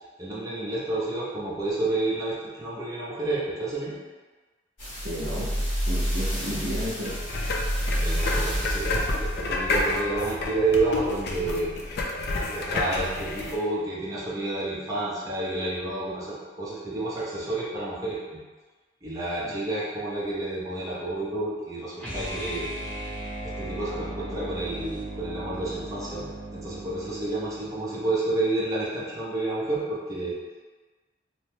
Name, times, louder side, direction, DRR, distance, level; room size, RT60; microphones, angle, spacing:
voice 1, 0.2-4.0 6.5-6.6 7.9-11.8 12.5-18.4 19.0-22.7 23.4-30.3, right 2 dB, 20° right, -8 dB, 0.6 m, -30 dB
sound 1, 4.8-11.3 11.8-11.9, equal, 80° left, 1.5 m, -29 dB
voice 2, 5.0-7.2, equal, 60° right, -6 dB, 0.6 m, -33 dB
sound 2, 7.0-13.6, left 2 dB, 60° left, 0.4 m, -30 dB
sound 3, 22.0-28.1, right 1 dB, 5° left, 0.9 m, -37 dB
2.9 x 2.2 x 3.2 m, 1.3 s
head